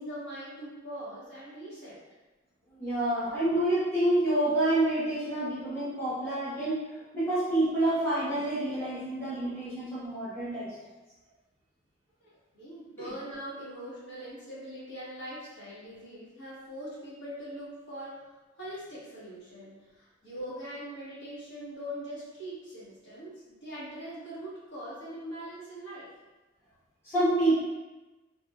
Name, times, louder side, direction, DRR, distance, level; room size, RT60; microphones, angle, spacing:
voice 1, 0.0-2.0 3.1-3.4 12.2-26.1, equal, 60° left, -10 dB, 1.3 m, -42 dB
voice 2, 2.8-6.8 7.1-10.7 13.0-13.1 27.0-27.6, right 1 dB, 10° left, -13 dB, 0.9 m, -28 dB
3.5 x 2.2 x 2.2 m, 1.1 s
head